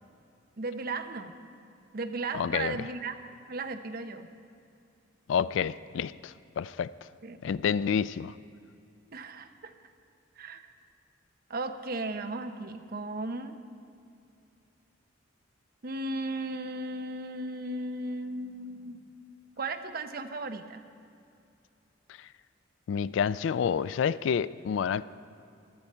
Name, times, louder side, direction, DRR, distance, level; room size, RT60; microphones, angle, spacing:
voice 1, 0.6-1.3 1.9-3.2 3.5-4.3 7.2-7.4 9.1-9.7 10.4-10.6 11.5-13.6 15.8-19.0 19.6-20.8, right 2 dB, 50° right, 0.7 m, -36 dB
voice 2, 2.3-2.8 5.3-6.9 7.4-8.3 22.9-25.0, left 7 dB, 70° left, 0.3 m, -29 dB
15.5 x 12.0 x 4.5 m
head